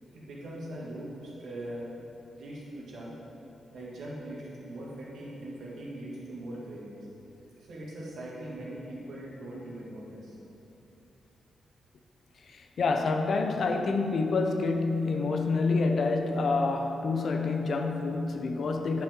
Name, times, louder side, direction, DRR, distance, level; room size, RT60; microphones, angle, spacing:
voice 1, 0.1-1.9 2.3-3.1 3.7-7.0 7.6-10.4, right 1 dB, 75° right, -5 dB, 2.1 m, -41 dB
voice 2, 12.5-19.0, left 3 dB, 50° left, 5 dB, 0.6 m, -27 dB
11.0 x 7.1 x 3.7 m, 2.9 s
wide cardioid pair, 175°, 0 cm